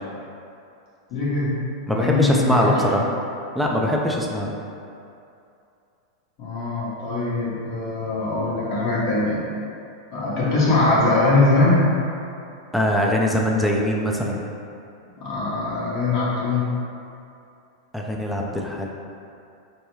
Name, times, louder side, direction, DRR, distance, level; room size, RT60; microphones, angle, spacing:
voice 1, 1.1-1.6 1.9-3.0 6.4-9.4 10.1-11.9 15.2-16.7, left 2 dB, 50° left, -8 dB, 1.1 m, -21 dB
voice 2, 1.9-3.0 3.5-4.5 12.7-14.4 17.9-18.9, left 1 dB, ahead, -2 dB, 0.5 m, -22 dB
5.5 x 2.2 x 3.1 m, 2.6 s
hypercardioid pair, 100°, 2 cm